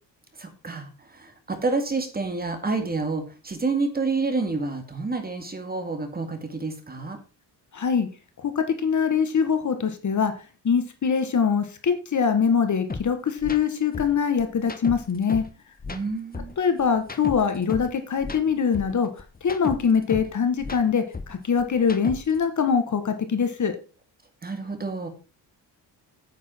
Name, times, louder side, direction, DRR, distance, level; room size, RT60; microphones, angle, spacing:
voice 1, 0.4-7.2 15.9-16.6 24.4-25.1, right 3 dB, 20° right, 6 dB, 2.1 m, -29 dB
voice 2, 7.7-8.1 8.4-10.3 10.6-15.4 16.6-19.1 19.4-23.8, left 6 dB, 40° left, 8 dB, 1.6 m, -23 dB
sound 1, 12.9-13.0 13.4-13.6 13.9-15.5 15.8-17.9 18.2-20.3 20.6-22.4, left 4 dB, 20° left, 1.1 m, -35 dB
9.3 x 8.4 x 4.5 m, 0.33 s
cardioid pair, 140°, 43 cm